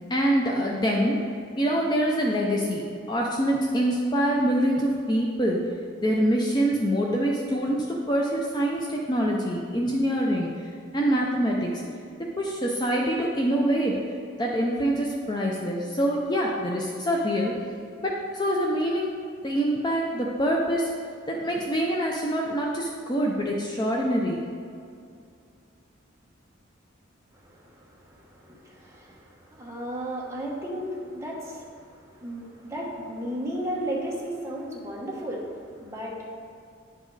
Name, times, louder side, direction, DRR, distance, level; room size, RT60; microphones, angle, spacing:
voice 1, 0.1-1.2 1.6-2.8 3.1-5.6 6.0-11.8 12.4-14.0 14.4-17.5 18.0-19.1 19.4-20.9 21.3-24.4, equal, 20° left, -2 dB, 0.5 m, -25 dB
voice 2, 27.3-36.3, right 1 dB, 15° right, -3 dB, 1.1 m, -35 dB
9.7 x 5.0 x 3.9 m, 2.4 s
head